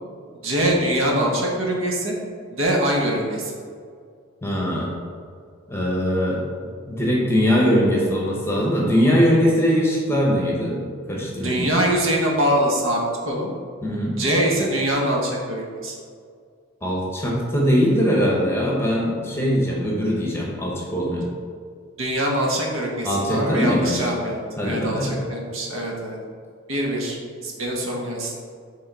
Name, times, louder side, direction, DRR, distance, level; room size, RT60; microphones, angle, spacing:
voice 1, 0.4-2.2 2.5-3.5 11.3-13.5 14.2-15.9 22.0-26.2 26.7-27.2 27.4-28.3, right 1 dB, 75° right, -1 dB, 1.2 m, -23 dB
voice 2, 4.4-4.9 5.7-6.4 6.9-10.8 11.1-11.7 13.8-14.2 16.8-21.3 23.0-24.1 24.6-25.2, equal, 10° left, -3 dB, 1.0 m, -21 dB
6.4 x 3.6 x 4.6 m, 2.1 s
head